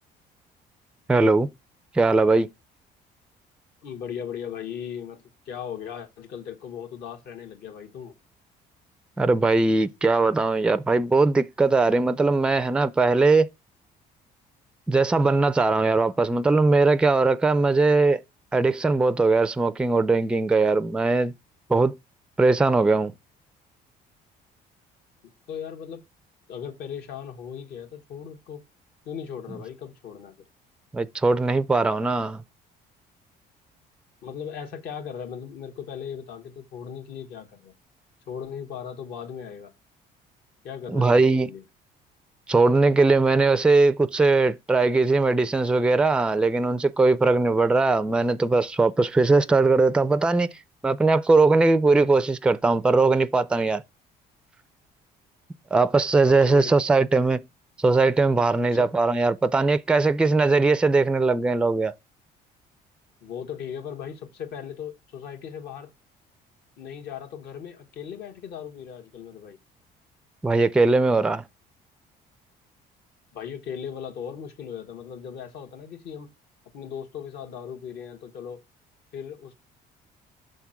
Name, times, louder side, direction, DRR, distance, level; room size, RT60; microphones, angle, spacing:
voice 1, 1.1-1.5 1.9-2.5 9.2-13.5 14.9-18.2 18.5-21.3 21.7-22.0 22.4-23.1 30.9-32.4 40.9-41.5 42.5-50.6 50.8-53.8 55.7-57.4 57.8-61.9 70.4-71.4, right 3 dB, 5° right, 0.3 m, -20 dB
voice 2, 3.8-8.1 25.5-26.0 26.5-28.6 29.0-30.4 34.2-37.7 38.3-39.7 40.6-41.6 56.3-56.7 58.5-58.9 63.2-65.9 66.8-69.6 73.3-76.3 76.7-78.6 79.1-79.5, left 8 dB, 70° left, 1.6 m, -37 dB
6.6 x 3.6 x 5.8 m
cardioid pair, 110°, 17 cm